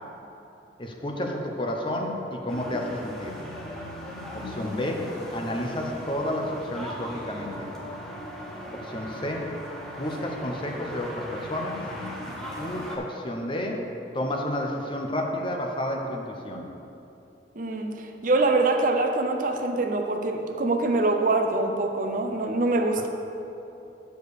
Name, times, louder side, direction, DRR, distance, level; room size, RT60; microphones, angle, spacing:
voice 1, 0.8-3.4 4.3-7.7 8.7-9.5 10.0-11.9 12.6-13.8 14.1-16.7, left 1 dB, 30° left, 1 dB, 0.8 m, -31 dB
sound 1, 2.5-13.0, equal, 5° left, 1.0 m, -38 dB
voice 2, 17.6-23.1, right 2 dB, 50° right, 4 dB, 0.6 m, -24 dB
8.7 x 4.6 x 6.6 m, 2.9 s
head